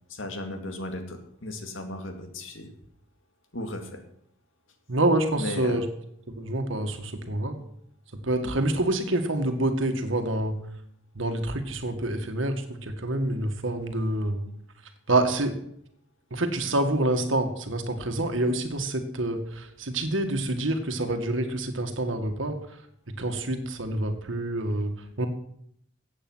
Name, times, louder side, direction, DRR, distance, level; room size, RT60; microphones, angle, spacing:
voice 1, 0.1-2.7 3.5-4.0 5.4-5.8 8.4-8.7, left 1 dB, 80° left, 5 dB, 2.2 m, -36 dB
voice 2, 4.9-5.8 6.3-7.6 8.1-10.6 11.2-14.4 15.1-15.6 16.3-22.6 23.1-25.3, right 1 dB, 75° right, 6 dB, 1.8 m, -27 dB
15.0 x 8.5 x 6.2 m, 0.69 s
head